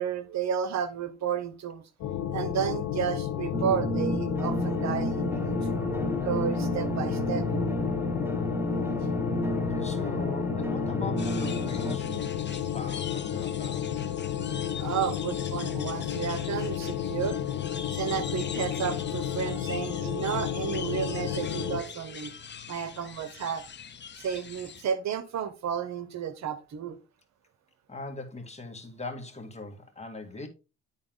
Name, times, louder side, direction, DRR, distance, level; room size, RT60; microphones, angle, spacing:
voice 1, 0.0-1.8 2.3-7.5 14.8-17.4 17.9-22.3 22.7-23.6 24.2-27.0, right 8 dB, 65° right, 1.1 m, -32 dB
sound 1, 2.0-21.8, left 10 dB, 80° left, 1.1 m, -32 dB
sound 2, 3.5-12.0, right 1 dB, 5° right, 1.2 m, -31 dB
voice 2, 9.5-13.9 27.9-30.5, left 3 dB, 20° left, 2.1 m, -41 dB
sound 3, 11.2-24.8, left 7 dB, 35° left, 1.0 m, -43 dB
10.5 x 4.0 x 3.9 m
cardioid pair, 90°, 30 cm